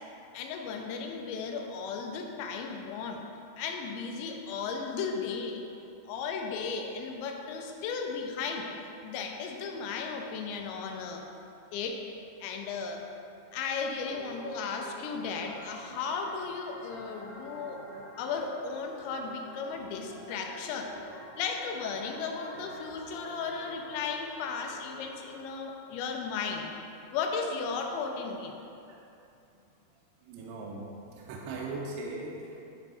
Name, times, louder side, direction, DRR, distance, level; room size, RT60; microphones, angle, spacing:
voice 1, 0.3-3.2 3.6-5.6 6.1-8.7 9.0-11.2 11.7-12.0 12.4-13.0 13.5-17.8 18.2-20.9 21.4-26.7 27.1-28.5, left 5 dB, 85° left, 2 dB, 2.9 m, -35 dB
sound 1, 14.1-25.4, right 1 dB, 65° right, 1.1 m, -48 dB
voice 2, 29.9-32.6, right 2 dB, 80° right, -3 dB, 2.5 m, -40 dB
10.0 x 3.4 x 4.1 m, 2.7 s
omnidirectional pair, 5.1 m